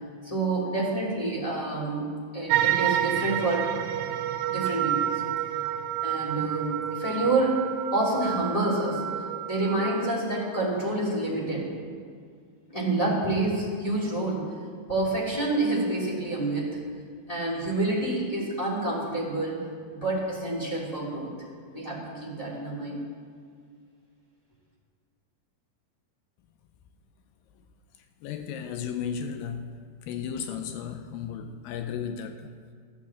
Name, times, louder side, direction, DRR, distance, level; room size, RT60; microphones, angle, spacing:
voice 1, 0.2-3.7 4.5-5.2 6.0-7.6 7.9-9.1 9.5-11.7 12.7-14.5 14.9-16.9 17.3-19.6 19.9-21.3 21.7-23.1, right 2 dB, 10° left, 2.1 m, -28 dB
sound 1, 2.5-10.1, right 11 dB, 90° right, 2.4 m, -29 dB
voice 2, 28.2-32.5, left 7 dB, 85° left, 2.3 m, -34 dB
14.0 x 7.2 x 7.2 m
omnidirectional pair, 4.1 m